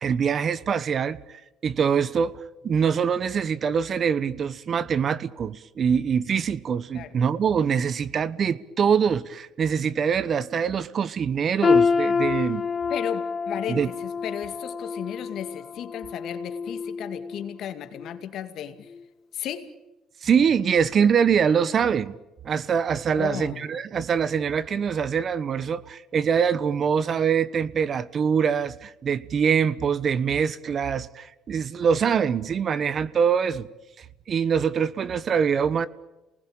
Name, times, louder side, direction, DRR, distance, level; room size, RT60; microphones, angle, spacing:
voice 1, 0.0-12.6 13.7-13.9 20.2-22.1 22.4-33.7 34.0-35.9, right 7 dB, 45° right, 1.1 m, -24 dB
sound 1, 11.6-17.6 18.0-18.2 18.9-19.0, left 5 dB, 40° left, 1.7 m, -27 dB
voice 2, 12.9-18.9 19.3-19.7 23.2-23.6, left 10 dB, 65° left, 2.3 m, -34 dB
28.0 x 19.5 x 9.0 m
supercardioid pair, 85°, 0 cm